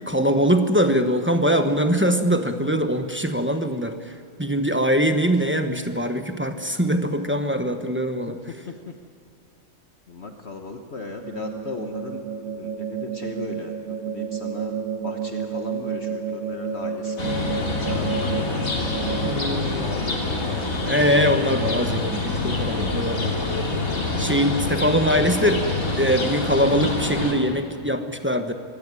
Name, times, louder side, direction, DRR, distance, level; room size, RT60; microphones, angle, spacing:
voice 1, 0.1-4.1 4.4-8.4 19.2-19.9 20.8-23.7 24.2-25.6 26.0-28.5, equal, 10° right, 6 dB, 1.0 m, -22 dB
voice 2, 8.5-8.9 10.1-12.2 12.5-17.3 17.8-21.4, left 3 dB, 50° left, 4 dB, 1.5 m, -37 dB
sound 1, 11.2-19.3, right 6 dB, 80° right, 1.4 m, -30 dB
sound 2, 17.2-27.3, left 3 dB, 75° left, 3.1 m, -26 dB
24.5 x 16.0 x 9.8 m, 2.4 s
omnidirectional pair, 1.5 m